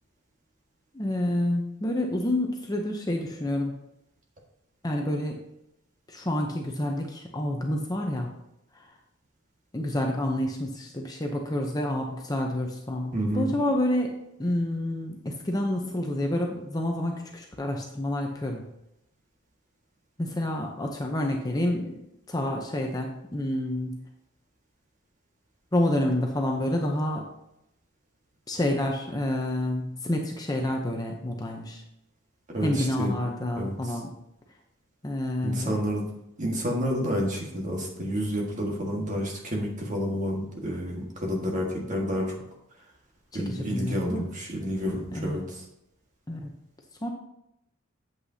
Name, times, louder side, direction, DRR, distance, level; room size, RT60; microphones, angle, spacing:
voice 1, 0.9-3.7 4.8-5.4 6.1-8.3 8.8-8.9 9.7-18.7 20.2-22.0 22.3-24.0 25.7-27.2 28.5-31.8 32.6-34.1 35.0-35.8 43.3-44.3 45.1-45.4 46.3-46.5 47.0-47.1, left 1 dB, 15° left, 1 dB, 0.7 m, -28 dB
voice 2, 13.1-13.5 32.5-33.1 33.6-33.7 35.4-36.1 36.4-42.4 43.3-45.4, equal, 35° right, -1 dB, 1.7 m, -29 dB
8.5 x 7.9 x 2.8 m, 0.84 s
head